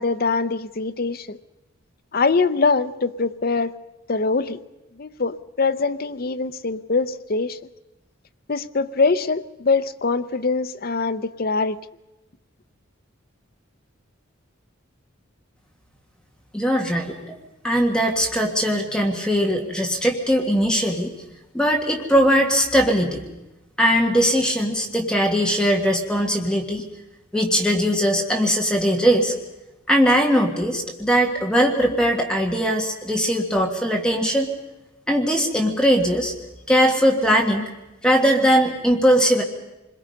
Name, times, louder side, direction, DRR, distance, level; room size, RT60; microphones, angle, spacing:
voice 1, 0.0-1.4 2.1-3.7 4.1-4.6 5.0-7.6 8.5-11.8, left 4 dB, 45° left, 11 dB, 0.7 m, -23 dB
voice 2, 16.5-17.4 17.6-21.1 21.5-23.2 23.8-26.8 27.3-29.3 29.9-34.5 35.1-36.3 36.7-37.7 38.0-39.4, equal, 5° left, 1 dB, 1.7 m, -20 dB
27.5 x 21.5 x 5.3 m, 0.97 s
head